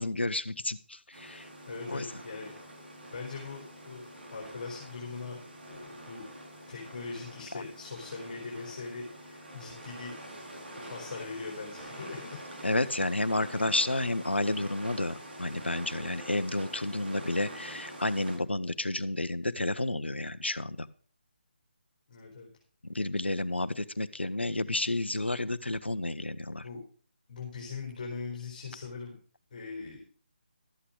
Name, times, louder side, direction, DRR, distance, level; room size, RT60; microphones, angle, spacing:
voice 1, 0.0-1.5 1.9-2.0 12.6-20.9 22.9-26.6, left 2 dB, 80° left, 15 dB, 0.9 m, -31 dB
sound 1, 1.1-18.4, right 1 dB, 55° right, 7.0 m, -46 dB
voice 2, 1.7-2.5 3.1-5.4 5.7-6.3 6.7-10.2 10.8-12.4 22.1-22.5 26.6-26.8 27.3-29.2 29.5-30.0, left 4 dB, 40° left, -2 dB, 4.0 m, -41 dB
13.0 x 8.4 x 5.0 m, 0.44 s
figure-of-eight pair, 150°, 6 cm